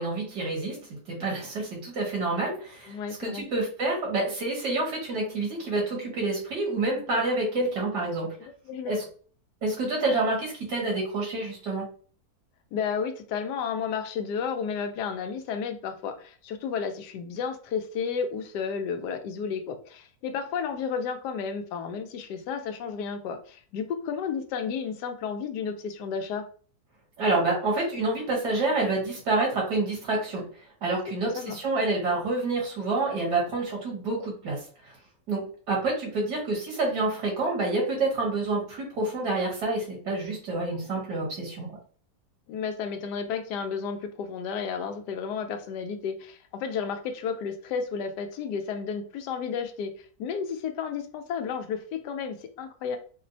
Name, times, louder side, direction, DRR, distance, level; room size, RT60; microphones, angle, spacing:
voice 1, 0.0-8.3 8.9-9.0 9.6-11.9 27.2-30.4 30.8-34.6 35.3-41.7, right 2 dB, 80° right, -2 dB, 2.0 m, -28 dB
voice 2, 2.9-3.5 8.4-8.9 12.7-26.5 31.2-31.6 42.5-53.0, left 6 dB, 80° left, 7 dB, 1.2 m, -32 dB
4.4 x 2.0 x 2.6 m, 0.42 s
omnidirectional pair, 1.8 m